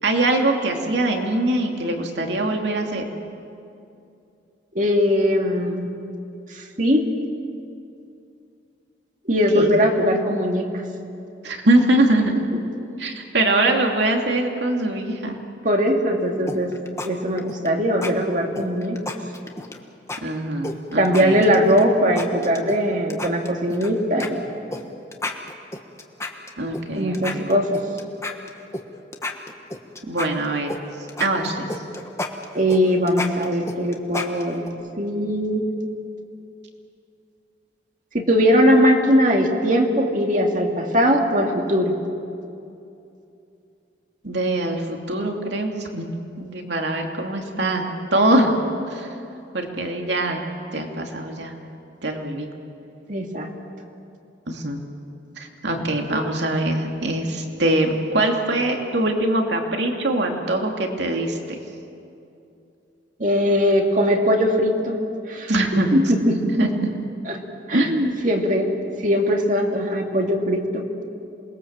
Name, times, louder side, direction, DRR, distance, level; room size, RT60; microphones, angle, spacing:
voice 1, 0.0-3.1 9.5-9.7 11.4-12.4 13.0-15.4 20.2-21.4 26.6-27.5 30.1-30.8 31.2-31.6 44.2-46.0 46.4-47.9 48.1-48.6 48.9-49.1 49.5-50.4 50.7-51.5 52.0-52.5 54.5-54.8 55.4-61.6 65.5-65.9 66.3-66.7 67.7-68.2, right 1 dB, 70° right, 2 dB, 2.7 m, -22 dB
voice 2, 4.7-5.9 6.5-7.1 9.3-10.7 15.6-16.7 17.0-19.0 20.9-24.5 27.0-27.8 32.5-35.7 38.1-41.9 53.1-53.5 63.2-65.0 65.3-65.5 65.9-66.5 67.3-67.4 67.7-67.9 68.2-68.7 69.0-70.9, equal, 40° right, 2 dB, 2.3 m, -20 dB
sound 1, 16.5-17.1 17.4-17.7 18.0-18.1 18.5-19.8 20.1-20.2 20.6-21.8 22.2-22.8 23.1-23.9 24.2-24.3 24.7-24.8 25.1-26.8 27.1-28.8 29.1-30.8 31.1-34.7, left 2 dB, 15° left, 1.3 m, -31 dB
27.5 x 21.0 x 7.4 m, 2.7 s
head